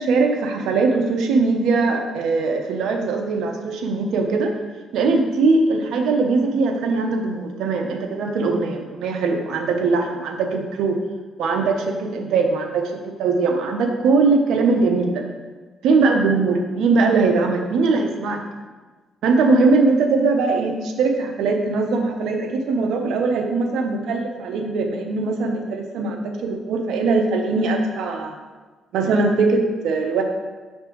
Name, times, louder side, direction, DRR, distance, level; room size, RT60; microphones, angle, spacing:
voice 1, 0.0-4.5 4.9-11.0 11.4-15.2 15.8-18.4 19.2-28.4 28.9-30.2, right 3 dB, 80° right, 3 dB, 0.7 m, -21 dB
6.9 x 5.3 x 3.0 m, 1.3 s
cardioid pair, 90°, 0 cm